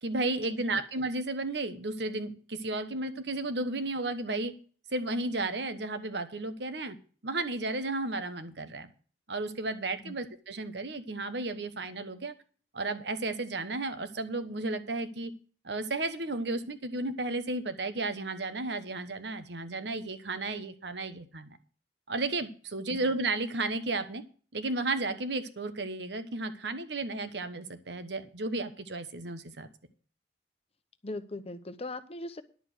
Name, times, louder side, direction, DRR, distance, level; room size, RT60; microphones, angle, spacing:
voice 1, 0.0-4.5 4.9-7.0 7.2-8.9 9.3-12.3 12.7-15.3 15.6-21.6 22.1-24.2 24.5-29.7, right 2 dB, 75° right, 10 dB, 1.2 m, -33 dB
voice 2, 31.0-32.4, left 2 dB, 35° left, 10 dB, 0.9 m, -39 dB
11.0 x 7.0 x 6.2 m, 0.41 s
head